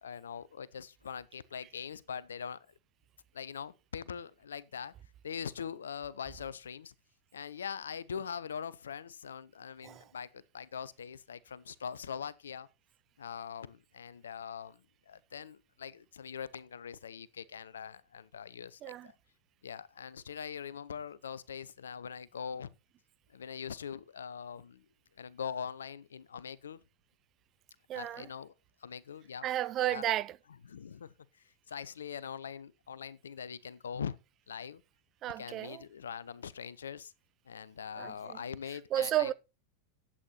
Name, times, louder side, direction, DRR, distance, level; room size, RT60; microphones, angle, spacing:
voice 1, 0.0-2.6 3.3-4.9 5.2-6.9 7.3-12.7 13.2-19.1 19.6-22.7 23.3-24.8 25.2-26.8 27.9-28.5 28.8-29.5 29.9-30.2 30.6-31.1 31.7-34.2 34.5-34.8 35.2-37.1 37.5-39.3, left 7 dB, 75° left, 0.7 m, -42 dB
voice 2, 27.9-28.3 29.4-30.4 35.2-35.8 38.0-38.4 38.9-39.3, right 13 dB, 35° right, 0.6 m, -32 dB
11.0 x 8.6 x 4.1 m
figure-of-eight pair, 95°, 0 cm